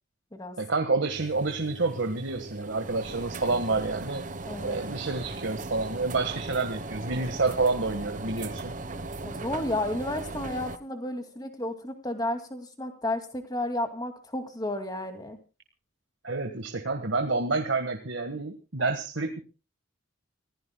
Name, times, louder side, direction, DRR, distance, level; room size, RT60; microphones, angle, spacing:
voice 1, 0.6-4.3 4.6-8.8 16.2-19.4, right 3 dB, 65° right, 5 dB, 1.6 m, -28 dB
sound 1, 1.1-10.8, right 2 dB, 40° right, 1.0 m, -38 dB
voice 2, 4.5-4.8 9.2-15.4, left 1 dB, 20° left, 7 dB, 2.4 m, -32 dB
29.5 x 16.0 x 2.3 m, 0.32 s
head